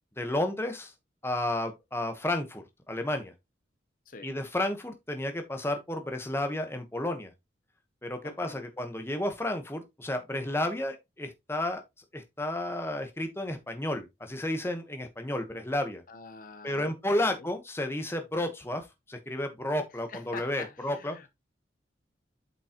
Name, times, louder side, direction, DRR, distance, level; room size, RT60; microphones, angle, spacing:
voice 1, 0.2-0.9 1.2-3.3 4.2-7.3 8.0-11.8 12.1-16.0 16.6-21.2, left 1 dB, 15° left, 1.1 m, -32 dB
voice 2, 8.2-8.7 16.1-17.5 19.9-21.3, left 4 dB, 45° left, 0.8 m, -46 dB
8.6 x 5.3 x 2.9 m
head